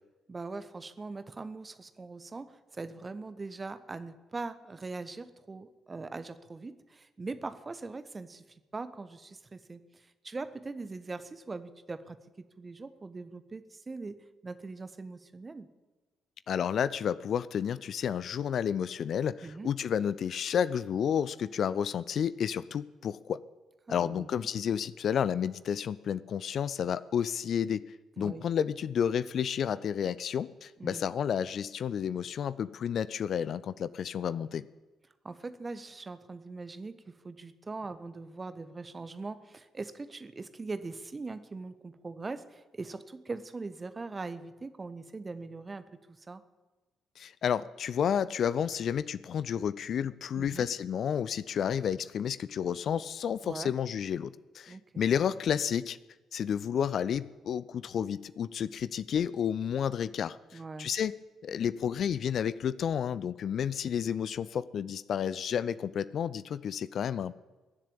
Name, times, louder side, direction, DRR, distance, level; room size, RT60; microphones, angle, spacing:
voice 1, 0.3-8.4 8.7-12.2 12.6-15.7 19.4-19.7 23.9-24.5 28.2-28.5 30.8-31.1 35.2-45.8 46.2-46.4 50.3-50.7 53.4-53.7 54.7-55.1 60.5-60.9, right 3 dB, 30° right, 12 dB, 1.2 m, -41 dB
voice 2, 16.5-23.4 23.9-27.8 28.2-34.6 47.2-56.0 56.3-61.1 61.4-67.5, left 8 dB, 50° left, 17 dB, 0.4 m, -31 dB
21.0 x 7.5 x 8.9 m, 1.2 s
figure-of-eight pair, 40°, 0 cm